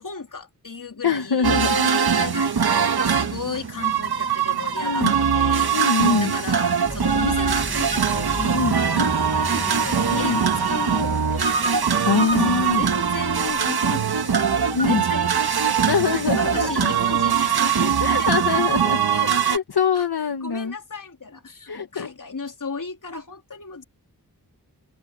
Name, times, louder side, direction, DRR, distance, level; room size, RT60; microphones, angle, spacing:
voice 1, 0.0-1.6 1.9-5.8 6.2-8.6 8.9-12.0 12.3-18.3 19.1-19.6 19.9-20.1 20.4-23.8, left 4 dB, 55° left, 3.4 m, -35 dB
voice 2, 1.0-2.0 4.8-5.1 5.7-6.3 8.5-8.7 10.1-10.4 12.0-12.8 14.7-15.0 15.9-16.8 18.0-19.0 19.4-20.7 21.7-22.1, left 5 dB, 80° left, 1.6 m, -23 dB
sound 1, 1.4-19.6, right 7 dB, 75° right, 1.6 m, -22 dB
Accelerating revving vroom, 6.8-13.7, right 1 dB, 5° right, 1.8 m, -36 dB
wide cardioid pair, 60°, 38 cm